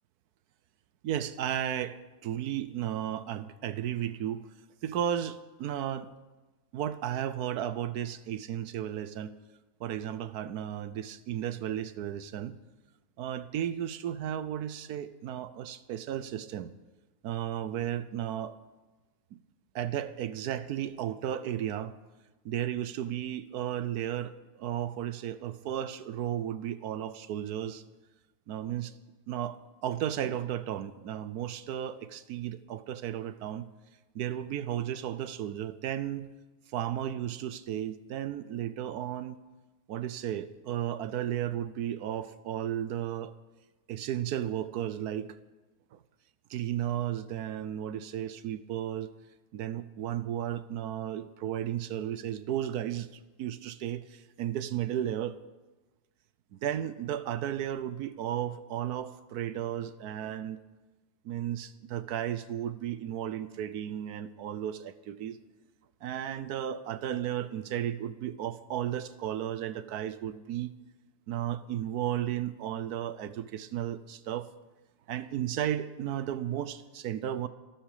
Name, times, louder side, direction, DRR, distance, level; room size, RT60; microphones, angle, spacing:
voice 1, 1.0-4.5 4.8-6.1 6.7-9.3 9.8-12.6 13.2-16.7 17.2-18.5 19.3-19.4 19.7-21.9 22.4-27.8 28.5-28.9 29.3-33.7 34.1-36.3 36.7-39.4 39.9-43.3 43.9-45.4 45.9-46.0 46.5-49.1 49.5-53.1 53.4-55.4 56.5-60.6 61.2-65.4 66.0-70.7 71.3-74.5 75.1-77.5, right 10 dB, 75° right, 14 dB, 1.2 m, -34 dB
26.0 x 9.1 x 4.9 m, 1.2 s
omnidirectional pair, 1.7 m